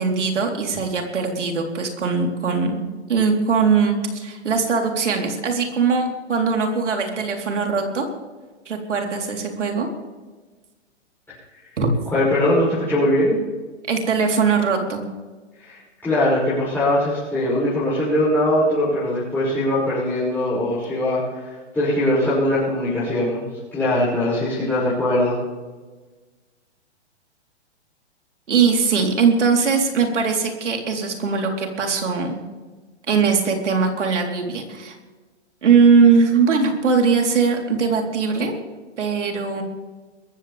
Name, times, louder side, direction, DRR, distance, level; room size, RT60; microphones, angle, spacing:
voice 1, 0.0-2.8 3.1-8.1 8.7-9.9 11.8-11.9 13.9-15.0 28.5-32.4 33.1-35.0 35.6-38.5 39.0-39.6, right 5 dB, 85° right, 2 dB, 4.0 m, -20 dB
voice 2, 12.1-13.4 15.6-23.5 23.7-25.4, left 1 dB, 5° left, -11 dB, 6.2 m, -21 dB
22.0 x 15.0 x 3.5 m, 1.3 s
hypercardioid pair, 145°, 35 cm